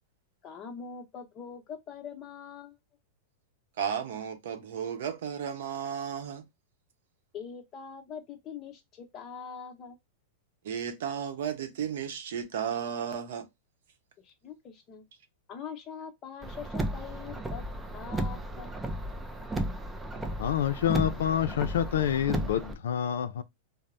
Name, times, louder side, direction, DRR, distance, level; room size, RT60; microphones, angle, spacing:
voice 1, 0.4-2.8 7.3-10.0 14.2-15.0 15.5-17.6 17.9-18.7, left 6 dB, 30° left, 0.8 m, -43 dB
voice 2, 3.8-6.4 10.6-13.5, right 8 dB, 75° right, 0.7 m, -34 dB
Car, 16.4-22.7, right 1 dB, 10° right, 0.3 m, -34 dB
voice 3, 20.4-23.4, left 10 dB, 85° left, 0.4 m, -27 dB
3.3 x 2.0 x 2.5 m
supercardioid pair, 150°, 0 cm